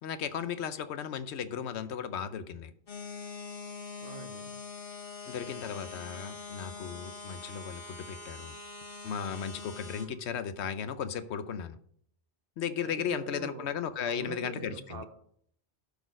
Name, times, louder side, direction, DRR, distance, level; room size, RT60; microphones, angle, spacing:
voice 1, 0.0-2.7 5.3-8.5 9.0-11.8 12.6-15.0, left 7 dB, 80° left, 12 dB, 0.9 m, -36 dB
sound 1, 2.9-10.1, left 4 dB, 55° left, 1.3 m, -43 dB
voice 2, 4.0-4.5 12.8-13.7 14.1-15.1, right 4 dB, 60° right, 7 dB, 1.1 m, -43 dB
12.0 x 4.1 x 5.1 m, 0.65 s
omnidirectional pair, 1.2 m